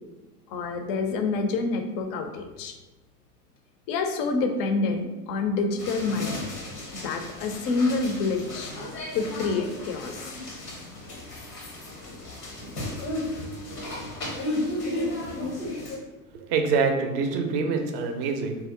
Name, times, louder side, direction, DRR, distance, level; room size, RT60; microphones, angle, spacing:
voice 1, 0.5-2.8 3.9-6.4 6.9-8.7 9.1-10.3, left 3 dB, 40° left, 5 dB, 0.4 m, -27 dB
sound 1, 5.8-16.0, left 1 dB, 90° left, 0.8 m, -34 dB
voice 2, 16.5-18.6, right 4 dB, 40° right, 5 dB, 0.5 m, -25 dB
2.7 x 2.0 x 3.6 m, 1.1 s
figure-of-eight pair, 80°, 45 cm